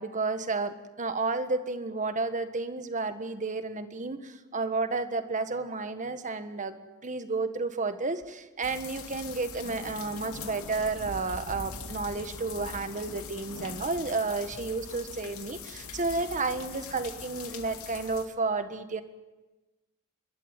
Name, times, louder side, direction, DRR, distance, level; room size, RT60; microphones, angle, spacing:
voice 1, 0.0-6.7 7.0-19.0, right 3 dB, 35° right, 9 dB, 1.6 m, -31 dB
sound 1, 8.6-18.3, left 4 dB, 80° left, 2.5 m, -42 dB
29.5 x 13.0 x 9.2 m, 1.1 s
head